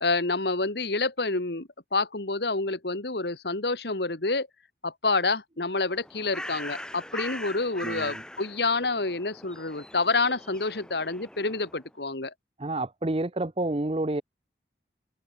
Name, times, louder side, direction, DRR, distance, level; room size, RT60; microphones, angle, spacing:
voice 1, 0.0-4.5 4.8-12.3, left 3 dB, 65° left, 1.9 m, -28 dB
Bird, 5.8-11.9, left 1 dB, 5° left, 1.4 m, -41 dB
voice 2, 7.8-8.2 12.6-14.2, right 2 dB, 30° right, 0.8 m, -29 dB
open air
head